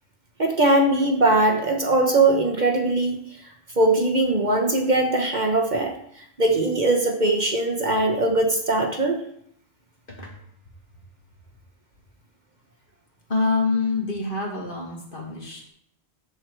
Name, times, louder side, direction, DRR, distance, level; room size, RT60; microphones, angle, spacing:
voice 1, 0.4-3.2 3.8-9.2, right 2 dB, 45° right, 2 dB, 1.2 m, -21 dB
voice 2, 13.3-15.7, left 3 dB, 50° left, -1 dB, 2.3 m, -26 dB
13.0 x 4.7 x 4.7 m, 0.69 s
omnidirectional pair, 1.1 m